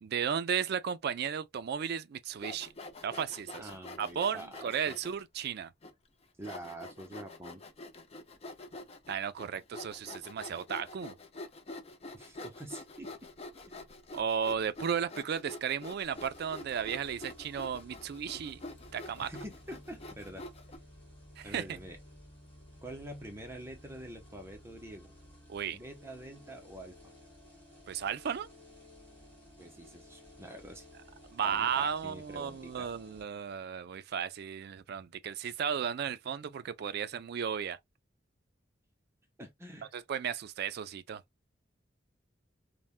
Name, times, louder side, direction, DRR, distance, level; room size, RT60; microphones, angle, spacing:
voice 1, 0.0-2.7 3.0-3.6 4.0-5.7 9.1-11.1 14.1-18.6 18.9-19.3 21.4-21.8 25.5-25.8 27.9-28.5 31.3-37.8 39.9-41.2, right 7 dB, 60° right, 0.3 m, -34 dB
Sawing, 2.3-5.2 5.8-5.9 6.4-20.8, left 2 dB, 35° left, 0.5 m, -46 dB
voice 2, 3.6-5.0 6.4-7.6 12.1-13.3 13.7-13.9 19.2-20.4 21.4-22.0 22.8-25.1 25.7-27.1 29.6-30.9 31.4-32.9 39.4-39.9, right 1 dB, 15° right, 0.6 m, -46 dB
sound 1, 16.1-33.2, left 1 dB, 10° left, 1.6 m, -55 dB
3.3 x 2.1 x 2.3 m
head